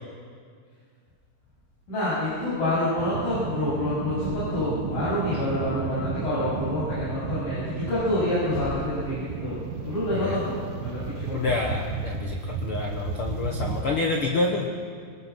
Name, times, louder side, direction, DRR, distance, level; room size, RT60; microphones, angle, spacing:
voice 1, 1.9-11.5, left 1 dB, 55° left, -11 dB, 9.3 m, -27 dB
sound 1, 3.0-13.8, right 6 dB, 65° right, 2.4 m, -34 dB
voice 2, 11.3-14.7, left 3 dB, 85° left, 0 dB, 1.2 m, -27 dB
24.5 x 19.5 x 6.2 m, 2.1 s
omnidirectional pair, 4.7 m